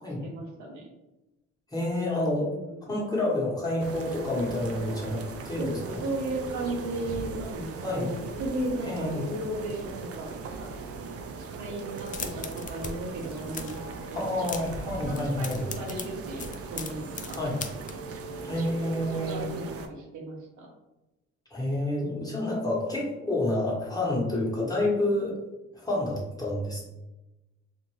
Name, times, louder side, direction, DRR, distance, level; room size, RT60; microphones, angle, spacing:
voice 1, 0.2-0.9 2.4-2.8 5.6-7.7 7.9-10.7 11.5-14.3 15.0-17.4 19.1-20.7 22.0-22.4, right 1 dB, 70° right, -1 dB, 0.8 m, -36 dB
voice 2, 1.7-2.5 2.9-6.0 7.8-8.1 8.8-9.3 14.1-15.6 17.4-17.6 18.4-19.5 21.5-25.3 25.7-26.8, left 1 dB, 10° left, -5 dB, 1.2 m, -29 dB
sound 1, 3.8-19.9, right 4 dB, 50° right, 0.4 m, -39 dB
sound 2, 11.9-12.9 13.2-13.8 14.2-14.8 15.1-17.9, left 5 dB, 25° left, 0.4 m, -38 dB
2.6 x 2.5 x 3.1 m, 0.99 s
cardioid pair, 90°, 30 cm